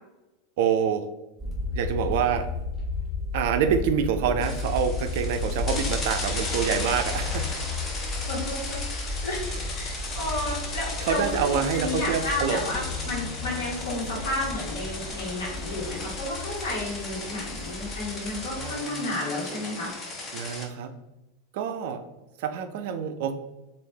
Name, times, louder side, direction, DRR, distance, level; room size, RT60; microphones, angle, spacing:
voice 1, 0.6-1.1 1.7-2.5 3.3-7.5 9.5-9.6 10.0-10.1 11.0-12.6 18.6-19.1 20.3-20.9 21.5-22.0 22.4-23.3, right 7 dB, 60° right, 8 dB, 0.3 m, -26 dB
sound 1, 1.4-18.6, left 3 dB, 5° left, 1.4 m, -34 dB
sound 2, 4.4-20.7, left 3 dB, 30° left, 0.7 m, -36 dB
voice 2, 8.3-19.9, left 2 dB, 65° left, -5 dB, 1.4 m, -32 dB
3.1 x 2.5 x 3.1 m, 1.0 s
figure-of-eight pair, 90°, 0 cm